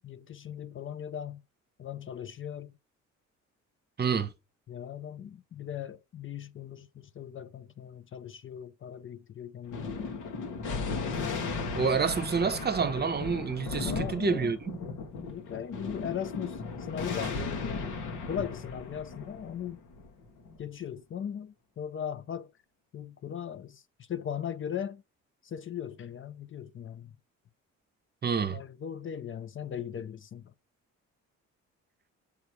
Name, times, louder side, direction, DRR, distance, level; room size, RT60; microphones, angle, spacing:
voice 1, 0.0-1.4 1.8-2.7 4.7-10.0 13.8-14.6 15.3-18.0 18.3-19.8 20.6-22.5 22.9-25.0 25.4-27.1 28.2-30.5, left 9 dB, 45° left, 0.5 m, -39 dB
voice 2, 4.0-4.3 11.8-14.8 28.2-28.6, right 5 dB, 35° right, 0.8 m, -28 dB
Thunder, 9.7-20.6, left 4 dB, 85° left, 1.6 m, -36 dB
7.1 x 3.2 x 4.4 m
cardioid pair, 90°, 30 cm